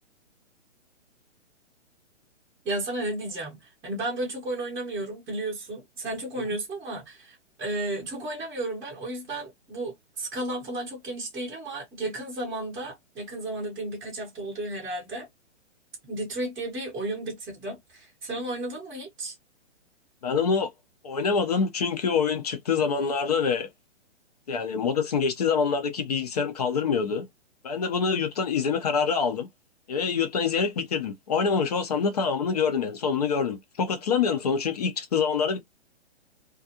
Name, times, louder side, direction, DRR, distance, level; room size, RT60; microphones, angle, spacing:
voice 1, 2.6-15.3 16.0-19.3, right 2 dB, 10° right, 0.7 m, -33 dB
voice 2, 20.2-20.7 21.0-23.7 24.5-27.2 27.6-29.5 29.9-35.6, left 6 dB, 35° left, 0.5 m, -25 dB
2.4 x 2.3 x 2.7 m
hypercardioid pair, 155°, 37 cm